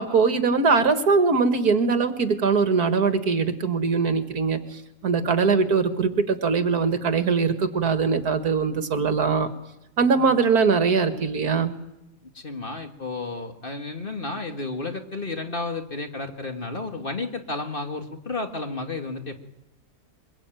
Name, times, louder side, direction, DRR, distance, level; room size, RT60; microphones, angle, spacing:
voice 1, 0.0-9.5 10.0-11.7, right 5 dB, 70° right, 8 dB, 2.2 m, -22 dB
voice 2, 12.2-19.4, left 3 dB, 35° left, 5 dB, 1.9 m, -32 dB
23.5 x 22.5 x 9.1 m, 0.88 s
omnidirectional pair, 1.7 m